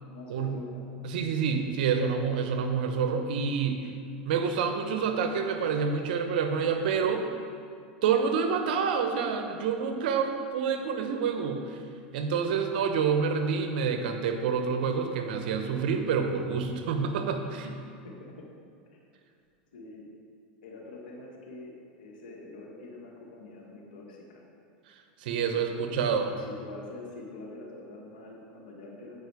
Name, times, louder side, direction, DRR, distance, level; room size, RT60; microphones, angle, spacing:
voice 1, 0.0-0.8 17.6-17.7 18.0-18.5 19.7-20.1 20.6-24.4 25.5-29.2, left 2 dB, 90° left, -2 dB, 1.6 m, -45 dB
voice 2, 1.0-3.9 4.2-7.3 8.0-11.8 12.1-17.8 25.2-26.3, right 6 dB, 75° right, 6 dB, 0.8 m, -28 dB
8.8 x 4.9 x 4.8 m, 2.4 s
supercardioid pair, 110°, 5 cm